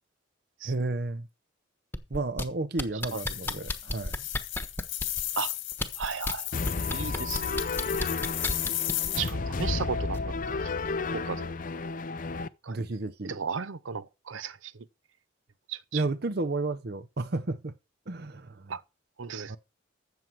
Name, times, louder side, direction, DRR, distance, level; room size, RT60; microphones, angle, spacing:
voice 1, 0.6-1.3 2.1-4.3 8.5-8.8 12.7-13.4 15.9-17.7 18.1-18.8 19.5-19.6, right 2 dB, 55° right, 0.7 m, -32 dB
sound 1, 1.9-2.4 2.8-5.2 5.7-6.3 6.7-9.1 10.1-10.2, left 1 dB, 10° left, 1.1 m, -31 dB
sound 2, 3.0-9.3, left 14 dB, 80° left, 1.9 m, -35 dB
voice 2, 6.0-6.5 6.9-7.5 9.2-10.2 10.5-10.7 11.1-11.5 12.6-12.8 13.3-14.7 15.7-16.0 18.7-18.8 19.2-19.6, right 6 dB, 85° right, 0.7 m, -35 dB
sound 3, 6.5-12.5, left 3 dB, 45° left, 0.6 m, -32 dB
13.0 x 7.6 x 4.7 m
head